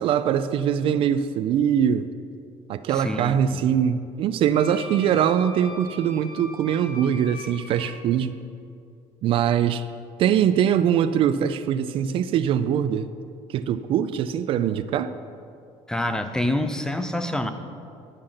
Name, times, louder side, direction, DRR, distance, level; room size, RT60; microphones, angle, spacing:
voice 1, 0.0-2.1 2.7-8.3 9.2-9.8 10.2-13.1 13.5-15.1, right 9 dB, 55° right, 12 dB, 0.4 m, -22 dB
voice 2, 2.9-3.6 15.9-17.5, left 1 dB, 5° left, 8 dB, 0.6 m, -27 dB
Wind instrument woodwind instrument, 4.5-7.9, left 1 dB, 45° left, 2.8 m, -40 dB
10.5 x 5.7 x 6.4 m, 2.5 s
cardioid pair, 120°, 11 cm